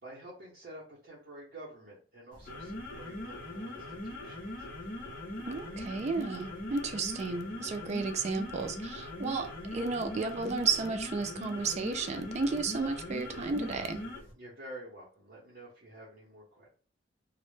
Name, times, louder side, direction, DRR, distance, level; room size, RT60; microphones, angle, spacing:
voice 1, 0.0-4.7 14.3-16.7, right 1 dB, 55° right, -7 dB, 0.7 m, -49 dB
sound 1, 2.3-14.3, left 1 dB, 50° left, 0.7 m, -41 dB
voice 2, 5.5-14.0, right 4 dB, 35° right, 6 dB, 0.3 m, -33 dB
2.0 x 2.0 x 3.1 m, 0.41 s
head